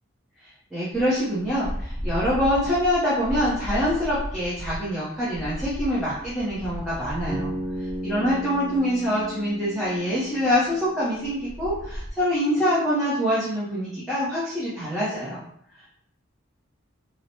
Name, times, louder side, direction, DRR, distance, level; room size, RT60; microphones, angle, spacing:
voice 1, 0.7-15.4 15.8-15.9, equal, ahead, -11 dB, 0.6 m, -25 dB
sound 1, 0.9-12.1, equal, 30° right, 0.9 m, -36 dB
Bass guitar, 7.3-11.4, equal, 75° right, 0.8 m, -35 dB
3.0 x 2.0 x 2.7 m, 0.68 s
head